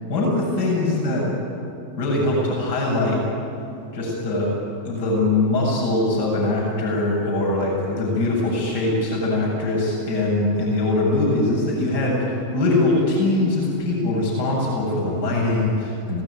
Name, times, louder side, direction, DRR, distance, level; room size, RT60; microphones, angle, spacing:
voice 1, 0.1-1.3 2.0-3.2 3.9-4.5 4.8-16.2, left 2 dB, 55° left, -2 dB, 7.8 m, -22 dB
26.0 x 18.5 x 9.5 m, 2.6 s
figure-of-eight pair, 90°, 0 cm